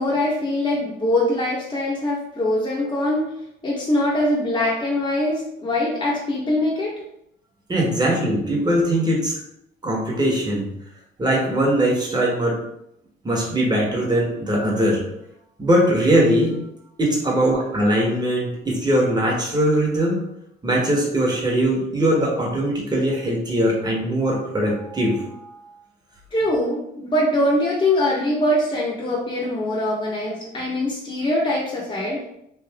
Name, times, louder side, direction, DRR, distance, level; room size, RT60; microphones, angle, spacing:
voice 1, 0.0-3.4 3.6-6.9 17.5-17.6 26.3-32.2, left 1 dB, 25° left, -6 dB, 0.9 m, -22 dB
voice 2, 7.7-9.3 9.8-10.7 11.2-12.6 13.2-15.0 15.6-16.6 17.0-20.2 20.6-25.3, right 1 dB, 20° right, -2 dB, 1.2 m, -20 dB
3.3 x 2.6 x 3.5 m, 0.78 s
cardioid pair, 90°, 20 cm